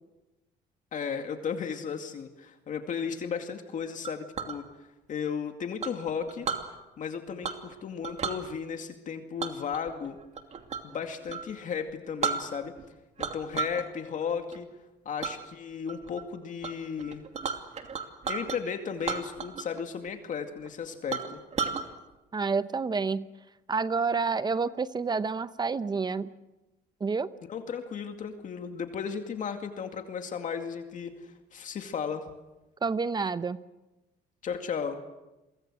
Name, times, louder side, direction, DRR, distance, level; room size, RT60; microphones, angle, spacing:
voice 1, 0.9-4.7 5.1-6.5 7.0-10.2 10.8-12.8 13.2-14.7 15.0-17.2 18.3-21.4 27.5-32.3 34.4-35.0, left 6 dB, 50° left, 6 dB, 2.3 m, -35 dB
Chink clink, 4.0-4.6 5.8-6.7 7.4-7.7 8.0-8.4 9.4-10.9 11.3-11.5 11.9-12.0 12.2-12.8 13.2-13.8 14.2-14.6 15.2-15.4 15.9-16.2 16.6-16.7 17.0-18.6 19.0-19.8 20.1-20.2 20.6-20.7 21.1-21.8, right 6 dB, 40° right, 2.6 m, -33 dB
voice 2, 22.3-23.3 23.7-26.3 27.0-27.3 32.8-33.6, right 4 dB, 25° right, 14 dB, 0.8 m, -28 dB
29.5 x 23.5 x 6.4 m, 1.0 s
cardioid pair, 110°, 17 cm